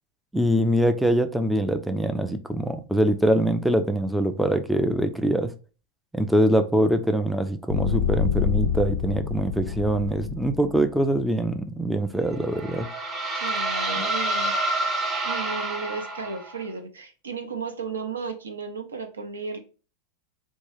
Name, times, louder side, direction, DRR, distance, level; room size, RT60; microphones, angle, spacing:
voice 1, 0.3-5.5 6.1-12.9, right 1 dB, ahead, 0.3 m, -23 dB
sound 1, 7.7-10.8, left 8 dB, 65° left, 0.4 m, -27 dB
sound 2, 12.3-16.6, right 2 dB, 25° right, 0.7 m, -28 dB
voice 2, 13.3-14.5 15.2-19.6, right 5 dB, 70° right, 0.6 m, -34 dB
3.5 x 2.2 x 3.1 m
figure-of-eight pair, 90°, 0 cm